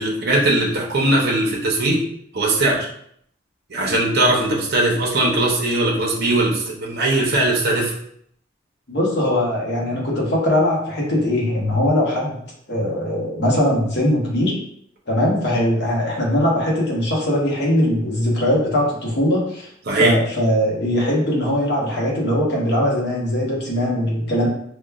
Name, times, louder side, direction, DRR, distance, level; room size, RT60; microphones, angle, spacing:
voice 1, 0.0-2.0 2.3-2.9 3.7-7.9 19.9-20.1, right 2 dB, 55° right, -2 dB, 0.7 m, -19 dB
voice 2, 8.9-12.4 12.7-14.6 15.1-24.5, left 1 dB, 60° left, -3 dB, 1.1 m, -20 dB
4.9 x 2.3 x 2.3 m, 0.68 s
head